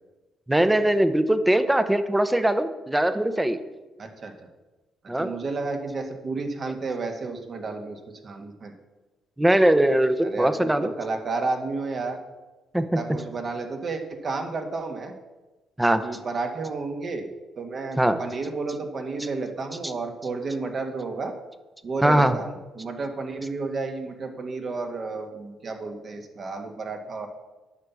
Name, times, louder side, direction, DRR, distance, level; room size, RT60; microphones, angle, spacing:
voice 1, 0.5-3.6 5.1-5.3 9.4-10.9 12.7-13.0 15.8-16.0 18.0-18.2 22.0-22.4, right 1 dB, 10° right, 11 dB, 0.8 m, -21 dB
voice 2, 4.0-4.5 5.1-8.7 10.2-12.2 12.8-15.1 16.0-17.3 17.6-21.3 21.8-27.3, right 3 dB, 50° right, 5 dB, 1.5 m, -32 dB
9.6 x 5.9 x 6.9 m, 1.1 s
cardioid pair, 90°, 0 cm